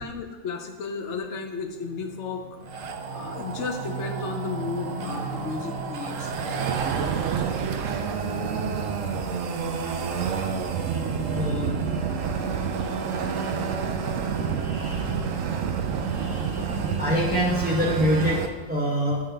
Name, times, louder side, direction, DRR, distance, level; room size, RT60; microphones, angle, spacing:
voice 1, 0.0-2.4 3.1-6.3, left 5 dB, 65° left, 5 dB, 0.9 m, -33 dB
sound 1, 1.6-18.4, right 2 dB, 30° right, 1.4 m, -38 dB
sound 2, 2.7-18.5, right 6 dB, 75° right, 1.0 m, -29 dB
voice 2, 11.4-11.8 17.0-18.4 18.7-19.2, equal, 10° right, -4 dB, 0.5 m, -24 dB
8.4 x 5.7 x 3.3 m, 1.3 s
omnidirectional pair, 1.4 m